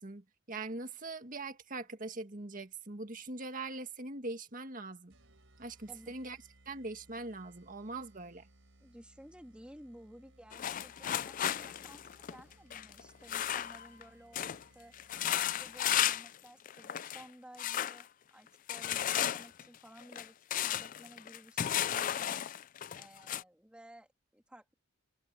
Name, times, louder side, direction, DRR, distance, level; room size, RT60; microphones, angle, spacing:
voice 1, 0.0-5.1 5.6-6.4 6.7-8.5, right 3 dB, 40° right, 1.8 m, -42 dB
sound 1, 5.1-16.5, right 1 dB, 70° right, 4.7 m, -64 dB
voice 2, 8.8-14.9 15.2-22.5 22.9-24.7, right 1 dB, 5° right, 2.4 m, -55 dB
sound 2, 10.5-14.0 14.3-14.6 14.9-16.4 16.7-17.2 17.6-18.0 18.7-23.4, left 11 dB, 40° left, 0.3 m, -34 dB
head